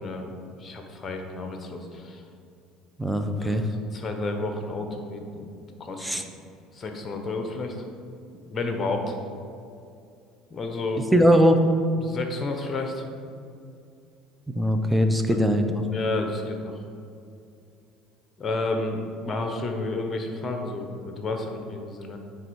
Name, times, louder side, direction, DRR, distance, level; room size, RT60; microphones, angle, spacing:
voice 1, 0.0-2.2 3.4-3.6 3.9-5.5 5.8-6.2 6.7-7.8 8.5-9.1 10.5-11.1 12.0-13.0 15.3-15.4 15.9-16.8 18.4-22.2, left 2 dB, 30° left, 4 dB, 1.0 m, -31 dB
voice 2, 3.0-3.7 6.0-6.2 11.1-11.6 14.5-15.9, equal, 5° right, 6 dB, 0.7 m, -21 dB
9.0 x 3.6 x 4.7 m, 2.5 s
hypercardioid pair, 70°, 0 cm